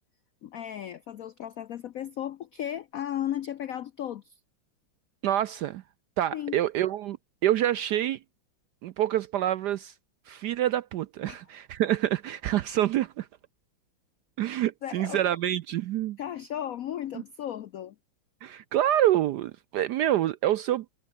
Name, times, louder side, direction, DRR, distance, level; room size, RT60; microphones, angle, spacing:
voice 1, 0.4-4.4 6.3-6.6 11.3-11.4 14.8-15.3 16.2-18.0, left 11 dB, 85° left, 0.7 m, -35 dB
voice 2, 5.2-5.8 6.2-7.2 7.4-8.2 8.8-9.9 10.3-13.3 14.4-16.2 18.4-20.9, right 12 dB, 75° right, 0.9 m, -27 dB
omnidirectional pair, 2.3 m